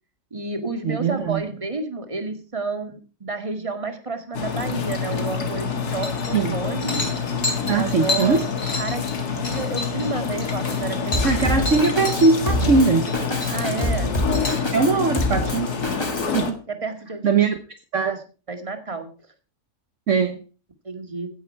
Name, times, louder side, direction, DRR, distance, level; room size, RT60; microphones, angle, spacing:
voice 1, 0.3-7.0 7.6-8.5 8.8-11.6 13.5-14.1 14.9-15.0 16.7-17.4 18.0-18.2 18.5-19.1 20.8-21.3, right 3 dB, 20° right, 7 dB, 2.1 m, -30 dB
voice 2, 0.8-1.4 6.3-6.5 7.7-8.4 11.2-13.0 14.7-15.7 16.3-16.6 17.2-17.6 17.9-18.1 20.1-20.4, right 4 dB, 55° right, 7 dB, 1.4 m, -20 dB
sound 1, 4.3-16.5, left 6 dB, 80° left, 2.4 m, -27 dB
sound 2, 6.0-6.5 6.8-12.3 12.6-13.2 13.4-14.6, left 2 dB, 55° left, 4.2 m, -30 dB
Drum kit, 11.1-16.4, left 1 dB, 15° left, 1.8 m, -26 dB
16.0 x 10.0 x 4.6 m, 0.35 s
omnidirectional pair, 1.6 m